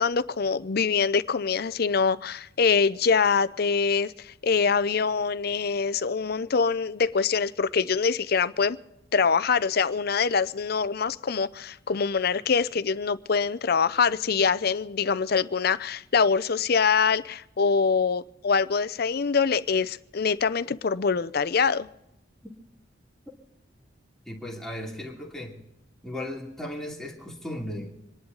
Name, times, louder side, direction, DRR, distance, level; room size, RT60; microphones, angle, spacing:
voice 1, 0.0-8.8 9.1-21.9, left 5 dB, 60° left, 0.6 m, -24 dB
voice 2, 24.3-25.6 26.0-27.9, left 1 dB, 5° left, 2.6 m, -36 dB
26.5 x 11.0 x 3.9 m
head